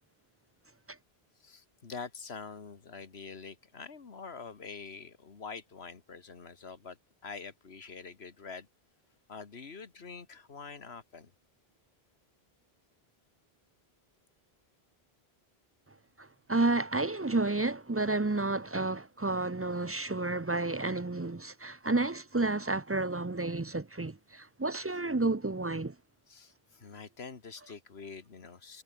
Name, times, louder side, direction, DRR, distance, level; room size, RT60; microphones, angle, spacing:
voice 1, 1.4-7.0 7.2-8.7 9.3-11.3 26.3-28.8, left 5 dB, 85° left, 1.9 m, -45 dB
voice 2, 16.2-26.0, right 2 dB, 20° right, 0.5 m, -31 dB
omnidirectional pair, 1.0 m